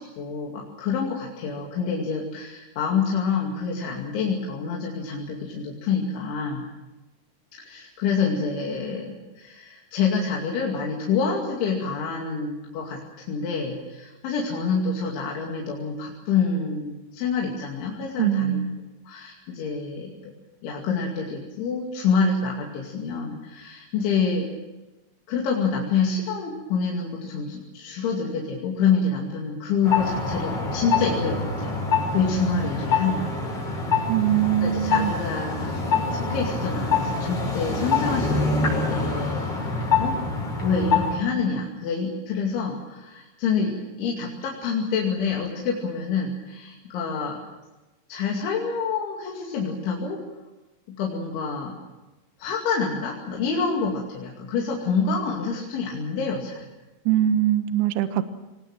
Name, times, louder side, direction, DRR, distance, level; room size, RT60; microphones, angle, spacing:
voice 1, 0.0-6.7 7.5-13.0 13.3-18.6 19.1-20.3 20.6-24.5 25.3-31.7 32.1-33.3 34.6-39.5 39.8-40.2 40.6-47.4 48.1-50.2 50.9-51.8 52.4-56.7, left 5 dB, 75° left, -2 dB, 4.9 m, -27 dB
voice 2, 18.2-18.8 34.1-35.1 57.1-58.3, right 11 dB, 70° right, 10 dB, 2.8 m, -22 dB
sound 1, 29.8-41.2, left 4 dB, 30° left, 7.0 m, -25 dB
25.5 x 20.5 x 7.4 m, 1.1 s
omnidirectional pair, 5.5 m